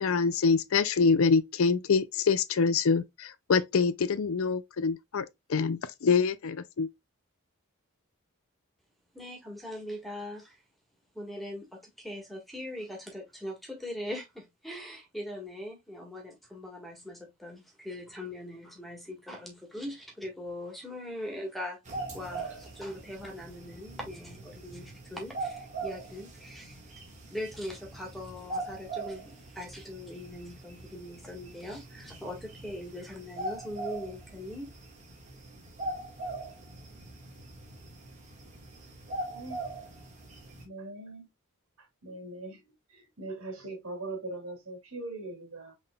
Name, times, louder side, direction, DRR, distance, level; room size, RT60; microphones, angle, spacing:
voice 1, 0.0-6.9, left 5 dB, 75° left, 0.5 m, -25 dB
voice 2, 9.1-10.6 11.1-21.8 22.1-26.9 27.3-34.8, left 1 dB, ahead, 1.6 m, -41 dB
sound 1, 21.9-40.7, right 2 dB, 35° right, 1.6 m, -42 dB
voice 3, 40.6-41.3 41.8-42.6 42.9-45.7, right 2 dB, 80° right, 2.4 m, -41 dB
5.6 x 3.6 x 2.2 m
head